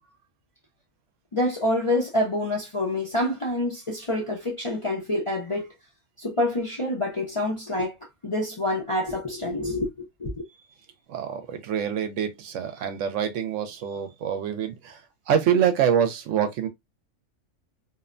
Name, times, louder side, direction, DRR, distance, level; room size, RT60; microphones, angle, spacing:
voice 1, 1.3-5.7 6.2-7.9 8.2-10.3, left 1 dB, 35° left, 0.5 m, -27 dB
voice 2, 11.1-15.0 15.3-16.7, right 8 dB, 70° right, 0.9 m, -25 dB
2.7 x 2.1 x 2.4 m
omnidirectional pair, 1.4 m